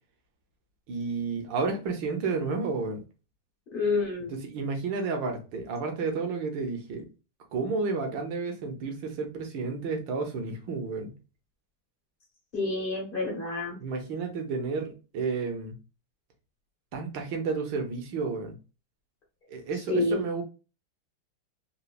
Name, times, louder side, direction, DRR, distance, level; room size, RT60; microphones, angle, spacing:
voice 1, 0.9-3.0 4.3-7.1 7.5-11.1 13.8-15.7 16.9-18.6 19.5-20.4, right 4 dB, 70° right, 1.4 m, -31 dB
voice 2, 3.7-4.3 12.5-13.8 19.9-20.3, left 3 dB, 45° left, 0.7 m, -28 dB
4.0 x 2.4 x 2.3 m
omnidirectional pair, 2.3 m